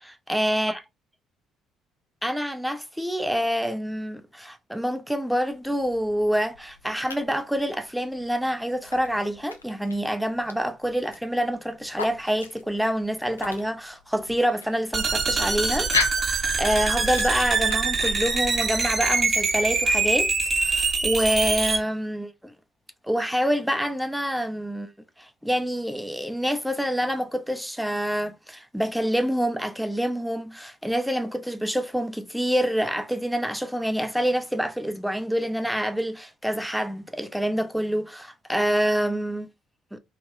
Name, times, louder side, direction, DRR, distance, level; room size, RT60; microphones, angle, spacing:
voice 1, 0.0-0.8 2.2-15.9 16.2-20.3 20.6-22.3 23.0-24.9 25.2-39.5 39.9-40.0, equal, ahead, 0.4 m, -27 dB
sound 1, 5.3-19.4, left 5 dB, 80° left, 0.3 m, -37 dB
sound 2, 14.9-21.8, right 4 dB, 30° right, 0.7 m, -24 dB
2.9 x 2.6 x 2.5 m
figure-of-eight pair, 50°, 0 cm